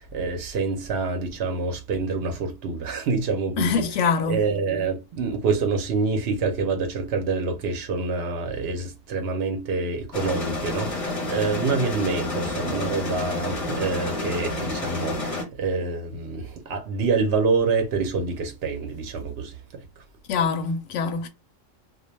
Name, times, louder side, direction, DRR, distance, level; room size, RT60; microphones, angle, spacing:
voice 1, 0.0-20.0, right 4 dB, 65° right, 0.6 m, -27 dB
voice 2, 3.6-4.4 20.3-21.3, left 5 dB, 70° left, 0.8 m, -24 dB
sound 1, 10.1-15.4, left 2 dB, 35° left, 0.7 m, -29 dB
2.3 x 2.1 x 3.0 m
omnidirectional pair, 1.4 m